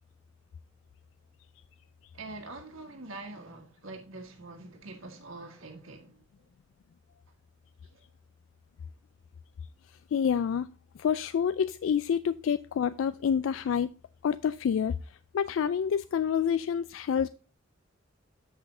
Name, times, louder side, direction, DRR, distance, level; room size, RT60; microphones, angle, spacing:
voice 1, 2.1-6.2 7.9-8.0, right 2 dB, 80° right, 1.5 m, -44 dB
voice 2, 9.9-13.9 14.2-17.3, left 7 dB, 65° left, 0.3 m, -28 dB
7.9 x 6.1 x 3.7 m
head